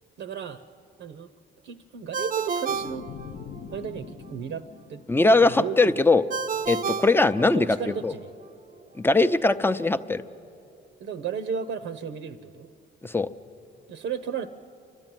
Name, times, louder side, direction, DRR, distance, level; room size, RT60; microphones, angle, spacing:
voice 1, 0.2-0.6 1.0-1.3 1.6-3.1 3.7-4.6 4.9-5.0 5.4-6.0 7.5-8.3 11.0-12.7 13.9-14.5, right 7 dB, 75° right, 9 dB, 0.8 m, -34 dB
Ringtone, 2.1-3.8 6.3-8.0, right 6 dB, 45° right, 0.6 m, -31 dB
sound 1, 2.7-5.9, left 7 dB, 50° left, 0.8 m, -43 dB
voice 2, 5.1-6.2 6.7-7.7 8.0-8.1 9.0-10.2 13.0-13.3, left 2 dB, 10° left, 11 dB, 0.6 m, -20 dB
29.5 x 12.5 x 9.1 m, 2.6 s
cardioid pair, 90°, 20 cm